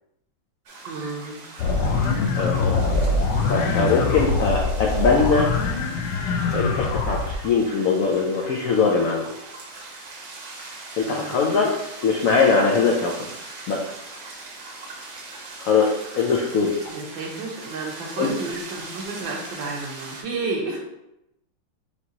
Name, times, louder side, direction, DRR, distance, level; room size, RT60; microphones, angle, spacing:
sound 1, 0.7-20.2, right 2 dB, 60° right, 1.2 m, -40 dB
voice 1, 0.8-1.4 11.0-11.5 16.9-20.8, right 3 dB, 80° right, -1 dB, 1.7 m, -31 dB
sound 2, 1.6-7.3, left 3 dB, 70° left, 1.0 m, -23 dB
voice 2, 2.4-2.8 3.5-5.5 6.5-9.3 11.0-11.8 12.0-13.3 13.7-13.8 15.6-16.7 18.2-18.3, left 4 dB, 90° left, -1 dB, 0.7 m, -21 dB
5.1 x 2.9 x 2.8 m, 0.85 s
omnidirectional pair, 2.1 m